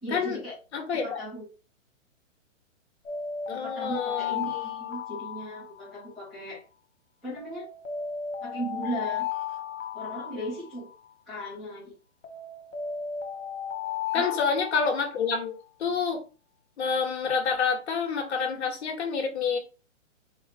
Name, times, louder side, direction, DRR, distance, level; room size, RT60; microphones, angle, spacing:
voice 1, 0.0-0.5 0.9-1.5 3.5-6.6 7.2-7.7 8.4-9.3 9.9-10.9 11.3-12.0 14.1-14.4, equal, ahead, -12 dB, 0.5 m, -37 dB
voice 2, 0.7-1.2 3.5-4.4 14.1-15.5 15.8-16.2 16.8-19.6, left 5 dB, 55° left, 3 dB, 1.4 m, -28 dB
sound 1, 3.0-6.2 7.4-11.1 12.2-15.5, left 8 dB, 80° left, 1.5 m, -35 dB
4.1 x 2.1 x 4.4 m, 0.33 s
hypercardioid pair, 160°, 38 cm